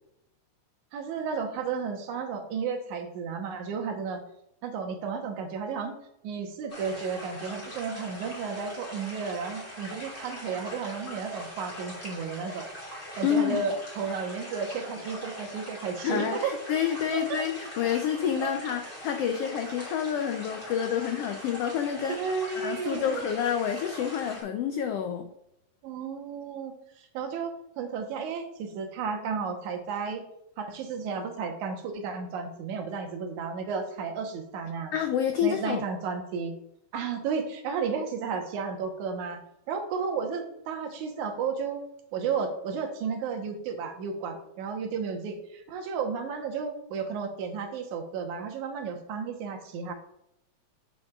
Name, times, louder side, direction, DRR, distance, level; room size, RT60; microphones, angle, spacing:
voice 1, 0.9-4.2 4.6-6.0 6.2-12.7 13.2-16.6 17.1-17.4 18.4-18.5 22.2-23.2 25.8-26.7 27.1-30.3 30.6-34.9 35.4-36.5 36.9-41.8 42.1-49.9, right 5 dB, 85° right, 4 dB, 2.5 m, -33 dB
sound 1, 6.7-24.4, equal, 20° left, 3.1 m, -42 dB
voice 2, 13.2-13.6 16.0-22.2 22.6-25.3 34.9-35.8, left 8 dB, 80° left, 5 dB, 1.4 m, -28 dB
9.2 x 7.2 x 2.4 m, 0.79 s
omnidirectional pair, 3.3 m